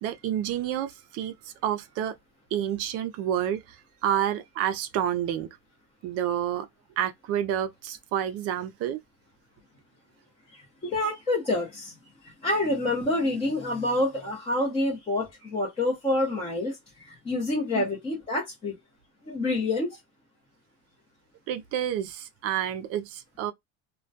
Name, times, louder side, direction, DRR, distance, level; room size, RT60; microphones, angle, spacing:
voice 1, 0.0-2.1 2.5-5.5 6.0-6.7 7.0-9.0 17.7-17.8 21.5-23.5, right 10 dB, 50° right, 0.4 m, -29 dB
voice 2, 10.5-11.9 12.2-18.8 19.2-20.0, left 2 dB, 20° left, 0.7 m, -28 dB
2.2 x 2.2 x 2.6 m
cardioid pair, 135°, 30 cm